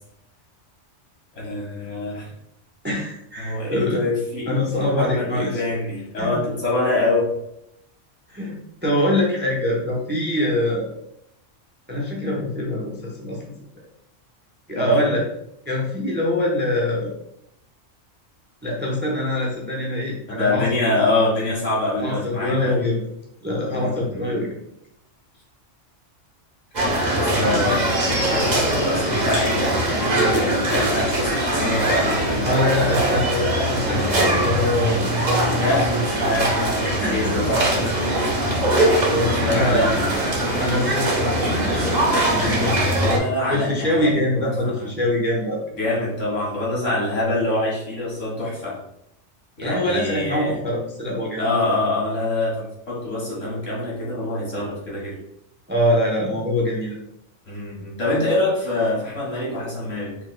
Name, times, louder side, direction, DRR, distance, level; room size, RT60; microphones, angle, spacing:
voice 1, 1.3-2.3 3.4-7.3 14.7-15.1 20.3-22.8 23.7-24.3 27.1-32.6 35.6-38.0 39.2-40.0 43.0-44.9 45.8-48.8 49.6-50.6 51.4-55.2 57.5-60.2, left 2 dB, 75° left, -5 dB, 2.1 m, -25 dB
voice 2, 2.8-4.0 4.5-5.6 6.2-6.3 8.3-10.9 11.9-13.5 14.7-15.2 15.7-17.1 18.6-20.7 22.0-23.1 23.4-24.6 32.4-35.1 36.8-37.4 39.1-39.9 40.6-42.8 43.5-45.6 49.6-51.4 55.7-57.0, left 1 dB, 10° right, -2 dB, 0.7 m, -24 dB
sound 1, 26.7-43.2, right 1 dB, 40° right, 1.0 m, -21 dB
4.9 x 3.9 x 2.2 m, 0.76 s
omnidirectional pair, 1.3 m